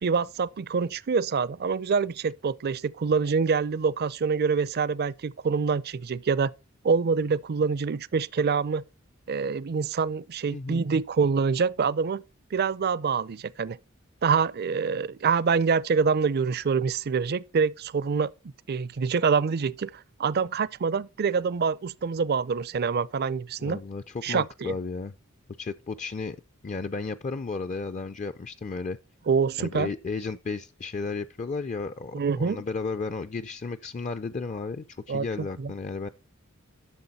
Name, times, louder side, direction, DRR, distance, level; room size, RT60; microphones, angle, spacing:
voice 1, 0.0-6.5 6.8-8.8 9.3-12.2 12.5-13.8 14.2-18.3 18.7-23.8 24.2-24.7 29.3-29.9 32.1-32.6 35.1-35.3 35.6-35.7, right 5 dB, 50° right, 0.5 m, -26 dB
voice 2, 10.5-10.9 23.6-25.1 25.6-26.4 26.6-29.0 29.6-36.1, left 4 dB, 35° left, 0.4 m, -33 dB
12.0 x 6.9 x 4.1 m
head